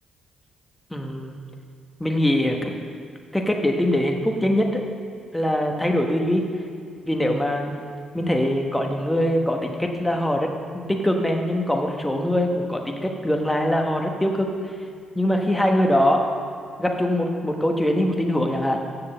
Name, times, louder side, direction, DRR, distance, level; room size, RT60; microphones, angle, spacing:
voice 1, 0.9-1.4 2.0-2.7 3.3-4.8 5.3-6.4 7.0-7.8 8.1-14.7 15.1-16.3 16.8-18.8, left 1 dB, 5° left, 2 dB, 1.1 m, -22 dB
7.6 x 6.6 x 6.6 m, 2.2 s
cardioid pair, 90°, 0 cm